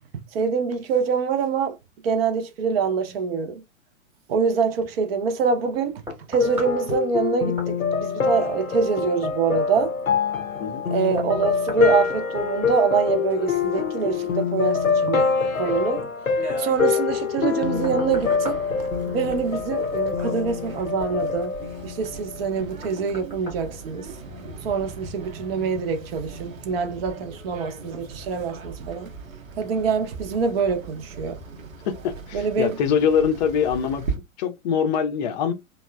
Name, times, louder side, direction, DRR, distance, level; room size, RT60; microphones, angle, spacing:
voice 1, 0.3-1.8 2.0-3.6 4.3-6.0 6.3-9.9 10.9-15.3 15.5-16.1 16.6-21.6 21.8-24.1 24.6-29.1 29.6-31.4 32.3-32.8, right 5 dB, 45° right, 0.6 m, -25 dB
sound 1, 5.4-24.6 25.1-25.3, equal, 5° right, 0.9 m, -43 dB
sound 2, 6.4-22.5, left 5 dB, 90° left, 0.7 m, -25 dB
sound 3, 17.7-34.2, right 4 dB, 80° right, 0.8 m, -39 dB
voice 2, 31.8-34.0 34.4-35.5, left 7 dB, 35° left, 0.5 m, -23 dB
2.9 x 2.1 x 2.2 m
figure-of-eight pair, 105°, 40 cm